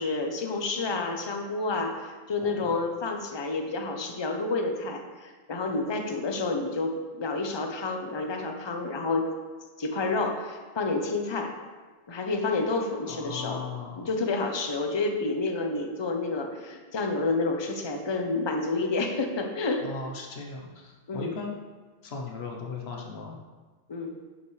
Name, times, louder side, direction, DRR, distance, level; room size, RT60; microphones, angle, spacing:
voice 1, 0.0-9.3 9.8-11.5 12.1-13.6 14.0-19.8 21.1-21.3 23.9-24.2, left 3 dB, 30° left, 3 dB, 0.7 m, -29 dB
voice 2, 2.4-2.7 13.0-14.1 19.8-21.6 22.0-23.4, left 4 dB, 80° left, 1 dB, 1.2 m, -37 dB
11.0 x 5.6 x 3.3 m, 1.4 s
omnidirectional pair, 1.1 m